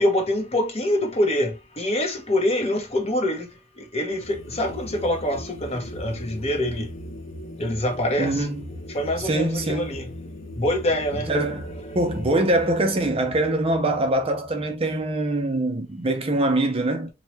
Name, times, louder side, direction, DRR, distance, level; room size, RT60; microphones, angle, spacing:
voice 1, 0.0-3.5 3.8-6.9 7.6-8.5 8.9-10.1 10.6-11.3 11.9-12.0, left 1 dB, 35° left, 0.7 m, -25 dB
sound 1, 4.1-15.4, left 1 dB, 85° left, 0.6 m, -39 dB
voice 2, 8.2-8.6 9.2-10.0 11.3-17.1, right 1 dB, 30° right, 0.5 m, -23 dB
2.9 x 2.1 x 3.0 m
head